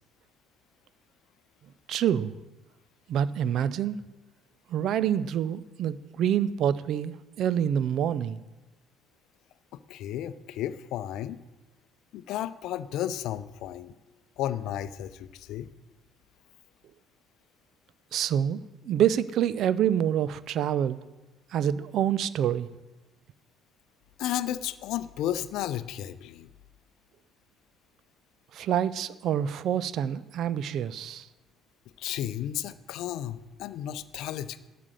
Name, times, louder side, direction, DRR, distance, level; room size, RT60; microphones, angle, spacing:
voice 1, 1.9-2.3 3.1-4.0 4.7-8.4 18.1-21.0 21.5-22.7 28.5-31.3, right 9 dB, 55° right, 17 dB, 0.5 m, -27 dB
voice 2, 9.9-11.4 12.1-13.9 14.4-15.7 24.2-26.5 32.0-34.7, left 12 dB, 65° left, 15 dB, 0.5 m, -33 dB
12.0 x 8.4 x 6.5 m, 1.1 s
figure-of-eight pair, 50°, 0 cm